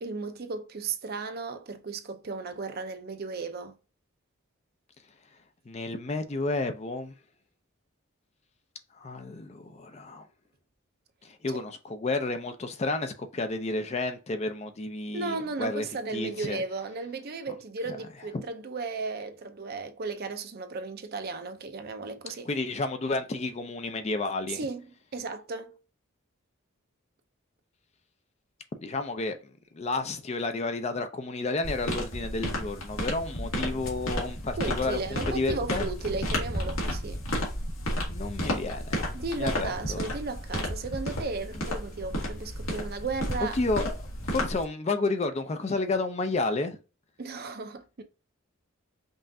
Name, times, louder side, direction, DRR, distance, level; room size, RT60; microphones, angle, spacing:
voice 1, 0.0-3.8 15.1-22.5 24.5-24.9 25.1-25.8 33.5-33.8 34.6-37.2 39.1-43.6 47.2-48.0, right 3 dB, 50° right, 0.6 m, -35 dB
voice 2, 5.7-7.1 8.9-10.3 11.2-15.9 16.1-16.6 17.5-17.6 18.3-18.4 22.4-24.6 28.8-29.4 29.7-35.0 35.3-35.9 38.1-39.0 39.4-40.0 43.5-43.9 44.3-46.8, left 3 dB, 30° left, 0.4 m, -31 dB
sound 1, 31.6-44.6, equal, 90° left, 1.6 m, -32 dB
5.4 x 2.5 x 2.7 m
head